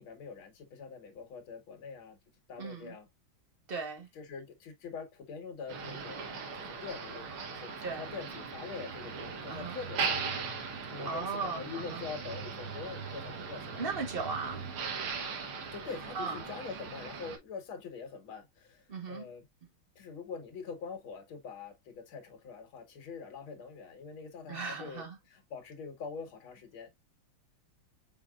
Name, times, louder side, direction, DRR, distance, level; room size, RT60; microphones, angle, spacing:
voice 1, 0.0-2.2 2.5-3.1 4.1-10.2 10.9-13.9 15.7-19.4 20.0-26.9, left 5 dB, 75° left, 2.1 m, -44 dB
voice 2, 2.6-2.9 3.7-4.1 7.8-8.1 9.5-9.8 11.0-12.0 13.8-14.7 16.1-16.4 18.9-19.3 24.5-25.2, right 4 dB, 35° right, 1.1 m, -37 dB
Motor vehicle (road), 5.7-17.4, right 5 dB, 90° right, 2.0 m, -39 dB
5.7 x 3.7 x 2.3 m
omnidirectional pair, 2.3 m